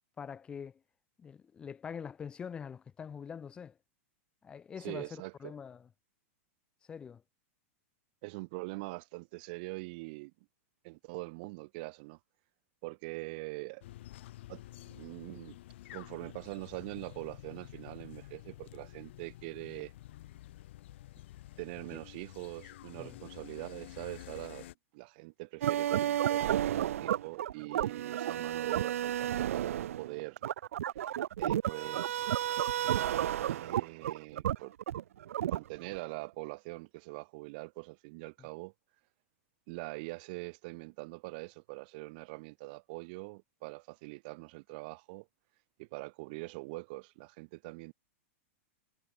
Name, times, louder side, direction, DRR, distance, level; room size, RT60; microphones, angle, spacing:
voice 1, 0.2-0.8 1.2-3.8 4.4-5.9 6.9-7.2 21.9-22.0 23.0-23.2, left 7 dB, 15° left, 1.8 m, -44 dB
voice 2, 4.8-5.5 8.2-10.3 10.8-12.2 12.8-13.8 14.5-14.6 14.9-15.6 15.9-19.9 21.6-30.4 31.0-31.1 31.4-32.4 33.5-34.7 35.4-38.7 39.7-45.3 45.8-47.9, right 26 dB, 40° right, 2.1 m, -43 dB
sound 1, 13.8-24.7, left 15 dB, 55° left, 3.8 m, -50 dB
sound 2, 25.6-36.0, right 11 dB, 75° right, 1.5 m, -32 dB
supercardioid pair, 165°, 7 cm